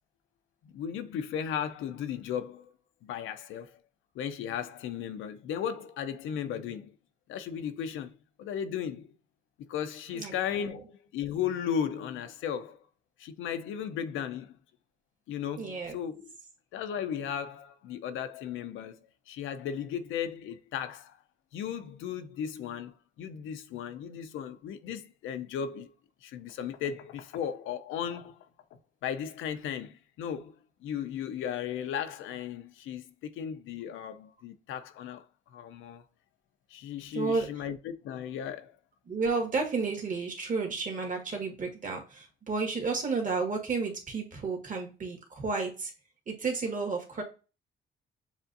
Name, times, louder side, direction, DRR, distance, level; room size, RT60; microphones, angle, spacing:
voice 1, 0.6-2.7 3.0-3.8 4.1-7.0 7.3-9.1 9.7-12.8 13.2-14.6 15.3-16.3 16.7-19.0 19.3-21.2 21.5-25.9 26.2-30.5 30.8-35.3 35.5-36.0 36.7-38.8, left 8 dB, 85° left, 0.6 m, -36 dB
voice 2, 15.6-15.9 37.1-37.4 39.1-45.9 46.3-47.2, right 4 dB, 40° right, 1.6 m, -31 dB
7.1 x 2.5 x 2.6 m
cardioid pair, 90°, 20 cm